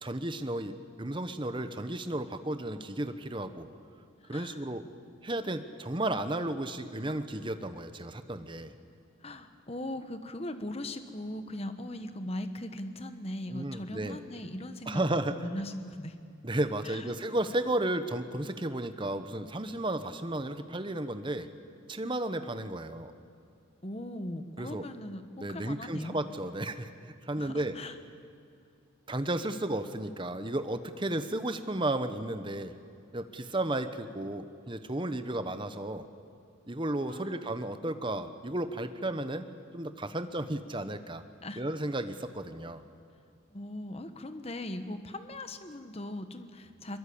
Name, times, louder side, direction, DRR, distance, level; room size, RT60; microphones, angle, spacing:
voice 1, 0.0-3.7 4.3-4.9 5.2-8.7 13.5-14.2 14.9-15.3 16.4-21.5 21.9-23.1 24.6-24.9 25.4-27.8 29.1-32.7 33.1-36.0 36.7-39.5 39.7-41.2 41.6-42.8, right 1 dB, 25° right, 9 dB, 1.0 m, -33 dB
voice 2, 4.2-4.7 9.2-16.2 16.8-17.2 23.8-26.2 27.4-28.0 37.1-37.5 41.4-41.6 43.5-47.0, left 1 dB, 30° left, 9 dB, 1.2 m, -39 dB
23.0 x 22.0 x 8.6 m, 2.3 s
head